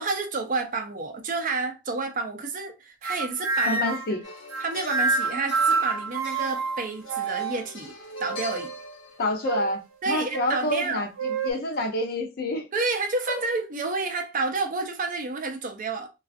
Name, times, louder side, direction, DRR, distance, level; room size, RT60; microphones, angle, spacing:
voice 1, 0.0-3.8 4.6-7.9 8.2-8.7 10.0-11.0 12.7-16.1, right 3 dB, 40° right, 0.5 m, -29 dB
sound 1, 3.0-4.2 4.5-7.7 8.2-8.8 9.4-9.8 10.3-10.5 11.2-11.5, right 4 dB, 85° right, 0.6 m, -28 dB
voice 2, 3.7-4.2 9.2-12.7, left 1 dB, 50° left, 0.6 m, -28 dB
sound 2, 4.2-9.9 11.7-11.8, left 4 dB, 75° left, 1.0 m, -43 dB
2.5 x 2.3 x 2.4 m
head